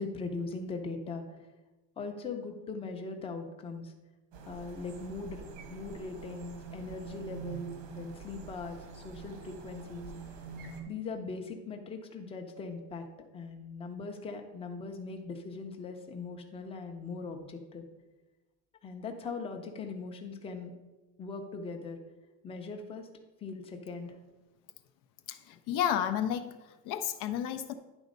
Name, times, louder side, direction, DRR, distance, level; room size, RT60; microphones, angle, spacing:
voice 1, 0.0-1.5 2.0-3.9 4.4-10.1 10.9-13.0 13.3-17.8 18.8-20.7 21.2-22.0 22.4-23.1 23.4-24.2, left 4 dB, 15° left, 3 dB, 0.6 m, -40 dB
sound 1, 4.3-10.8, right 5 dB, 90° right, 1.4 m, -45 dB
voice 2, 25.3-27.7, left 10 dB, 60° left, 9 dB, 0.5 m, -32 dB
9.9 x 4.1 x 5.2 m, 1.1 s
cardioid pair, 170°, 37 cm